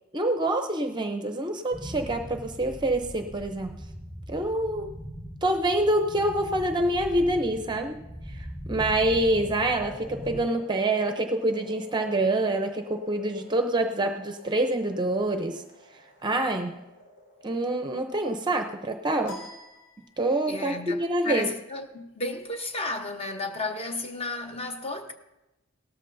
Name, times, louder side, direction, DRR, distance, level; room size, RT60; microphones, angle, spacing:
voice 1, 0.1-3.8 4.3-4.9 5.4-8.0 8.3-15.6 16.2-16.8 17.4-19.4 20.2-21.5, right 1 dB, 20° right, 0.6 m, -26 dB
sound 1, 1.7-10.4, equal, 10° left, 3.6 m, -40 dB
sound 2, 8.9-19.2 19.6-19.7, left 3 dB, 50° left, 4.2 m, -48 dB
sound 3, 19.2-20.6, left 1 dB, 75° left, 2.6 m, -44 dB
voice 2, 20.5-25.1, left 2 dB, 25° left, 1.0 m, -33 dB
18.0 x 13.5 x 2.6 m
head